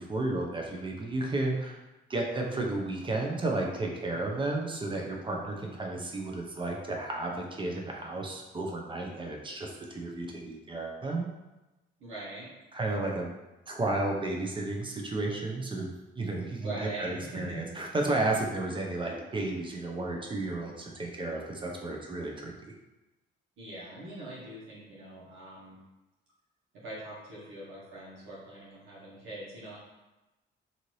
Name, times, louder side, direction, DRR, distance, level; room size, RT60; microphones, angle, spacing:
voice 1, 0.0-1.8 2.1-11.3 12.7-13.3 13.7-15.9 16.2-22.7, right 2 dB, 25° right, 0 dB, 0.6 m, -33 dB
voice 2, 12.0-12.5 16.6-17.7 23.6-25.8 26.8-29.8, right 2 dB, 85° right, -8 dB, 1.1 m, -42 dB
2.7 x 2.5 x 3.1 m, 1.0 s
cardioid pair, 90°, 20 cm